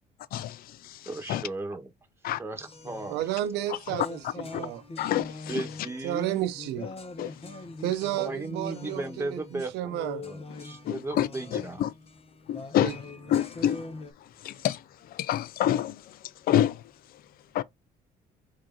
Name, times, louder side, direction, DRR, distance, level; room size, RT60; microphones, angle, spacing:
voice 1, 0.3-1.4 2.2-2.4 4.5-4.6 5.0-5.6 7.2-7.3 10.9-11.9 12.5-13.0 13.3-13.9 14.4-14.8 15.1-16.2 16.5-16.8 17.5-17.6, left 11 dB, 60° left, 0.5 m, -28 dB
voice 2, 1.1-1.9 2.4-3.3 5.5-6.4 8.2-11.8, right 2 dB, 15° right, 1.4 m, -36 dB
sound 1, 2.6-14.1, left 2 dB, 35° left, 1.2 m, -43 dB
voice 3, 3.1-4.8 6.0-6.9 7.8-10.2 12.8-12.9, right 13 dB, 90° right, 0.8 m, -32 dB
4.9 x 2.8 x 3.9 m
cardioid pair, 110°, 17 cm